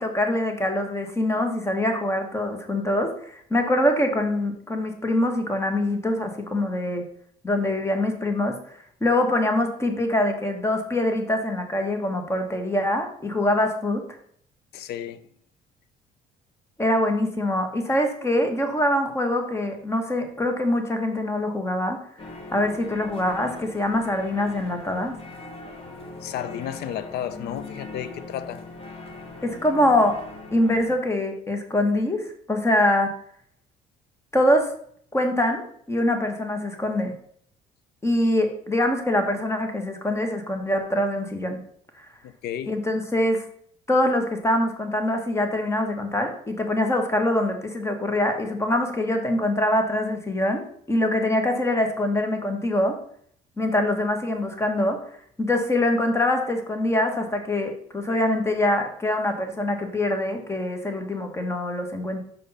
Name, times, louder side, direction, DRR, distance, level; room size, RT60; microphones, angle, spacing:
voice 1, 0.0-7.0 7.4-8.6 9.0-14.0 16.8-22.0 22.5-25.1 29.4-30.2 30.5-33.1 34.3-34.7 35.1-37.1 38.0-41.6 42.7-43.4 43.9-53.0 53.6-55.0 55.4-62.2, left 1 dB, 15° left, 1.5 m, -24 dB
voice 2, 14.7-15.2 26.2-28.6 42.2-42.7, left 10 dB, 75° left, 0.7 m, -33 dB
sound 1, 22.2-31.0, left 3 dB, 35° left, 1.9 m, -41 dB
5.6 x 5.2 x 5.6 m
cardioid pair, 110°, 17 cm